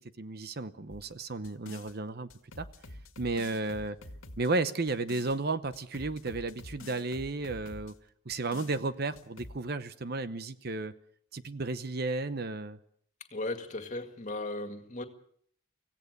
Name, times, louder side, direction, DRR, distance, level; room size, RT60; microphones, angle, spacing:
voice 1, 0.0-2.3 2.6-2.7 3.2-4.0 4.4-7.9 8.3-10.9 11.3-12.8, right 3 dB, 50° right, 0.8 m, -33 dB
sound 1, 0.9-1.9 2.3-5.4 5.7-7.9 8.3-8.8 9.2-9.6, left 2 dB, 90° left, 2.0 m, -47 dB
voice 2, 13.3-15.0, left 2 dB, 35° left, 2.1 m, -36 dB
25.5 x 16.5 x 6.7 m
head